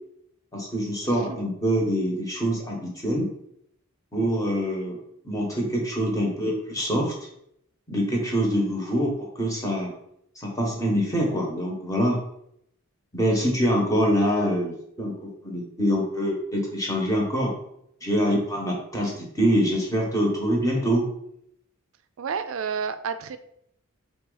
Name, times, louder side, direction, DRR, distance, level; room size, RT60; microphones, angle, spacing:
voice 1, 0.5-3.3 4.1-5.0 5.2-7.1 7.9-9.9 10.4-12.2 13.1-17.5 18.0-21.1, equal, 15° left, -2 dB, 1.0 m, -25 dB
voice 2, 22.2-23.4, right 6 dB, 70° right, 11 dB, 0.4 m, -30 dB
4.2 x 3.2 x 3.8 m, 0.74 s
head